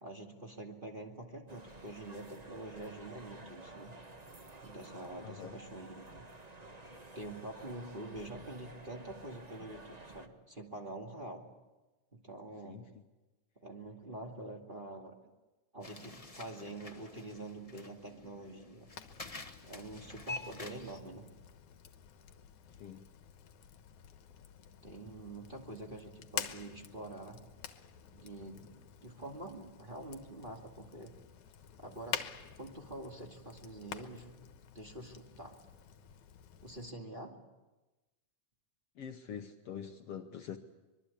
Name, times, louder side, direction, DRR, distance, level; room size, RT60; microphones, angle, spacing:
voice 1, 0.0-3.9 4.6-6.3 7.1-11.5 12.1-12.8 13.6-15.2 15.7-18.9 19.6-21.3 24.8-27.4 28.1-31.1 31.8-32.2 32.6-34.3 34.6-35.6 36.6-37.4, right 1 dB, 20° right, 0 dB, 2.1 m, -46 dB
sound 1, 1.5-10.3, right 2 dB, 80° right, 0.3 m, -52 dB
voice 2, 5.2-5.6 12.6-12.9 22.8-23.1 39.0-40.6, left 8 dB, 65° left, 6 dB, 1.8 m, -44 dB
sound 2, 15.8-21.0, left 2 dB, 20° left, 0.9 m, -47 dB
Fire, 18.9-36.9, left 9 dB, 80° left, 2.6 m, -48 dB
24.5 x 22.5 x 8.5 m, 1.1 s
omnidirectional pair, 3.4 m